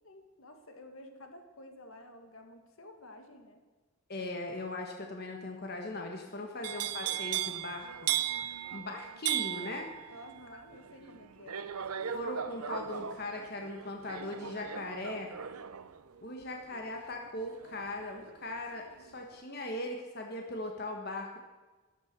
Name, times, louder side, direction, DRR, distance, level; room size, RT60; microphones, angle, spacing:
voice 1, 0.0-3.6 6.4-6.7 10.1-11.6, left 1 dB, 65° left, 6 dB, 1.8 m, -52 dB
voice 2, 4.1-10.1 12.1-15.3 16.2-21.4, left 2 dB, 45° left, 2 dB, 1.5 m, -39 dB
sound 1, 6.6-18.6 18.9-19.4, right 10 dB, 85° right, 0.7 m, -37 dB
13.0 x 12.0 x 6.8 m, 1.3 s
head